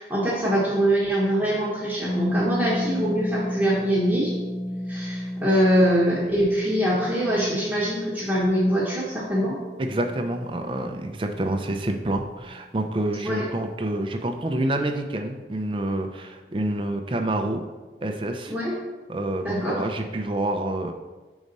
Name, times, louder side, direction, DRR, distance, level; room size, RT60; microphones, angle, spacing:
voice 1, 0.0-4.3 4.9-9.6 13.2-13.5 18.5-18.7 19.4-19.8, equal, 10° right, -8 dB, 1.0 m, -23 dB
Harp, 2.0-11.6 11.9-12.0 12.1-12.5, equal, 55° left, 1.8 m, -33 dB
voice 2, 9.8-17.6 18.0-18.5 19.1-20.9, right 1 dB, 30° right, 5 dB, 0.5 m, -27 dB
4.8 x 4.1 x 5.3 m, 1.3 s
head